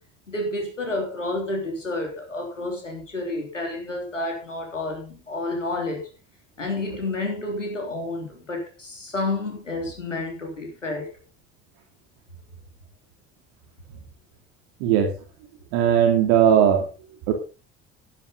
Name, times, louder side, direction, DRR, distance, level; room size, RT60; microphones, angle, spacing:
voice 1, 0.3-6.0 6.6-11.2, left 2 dB, 90° left, 2 dB, 3.4 m, -30 dB
voice 2, 14.8-15.1 15.7-16.9 17.3-17.4, right 9 dB, 65° right, 4 dB, 2.9 m, -18 dB
13.0 x 12.5 x 4.0 m, 0.32 s
figure-of-eight pair, 60°, 36 cm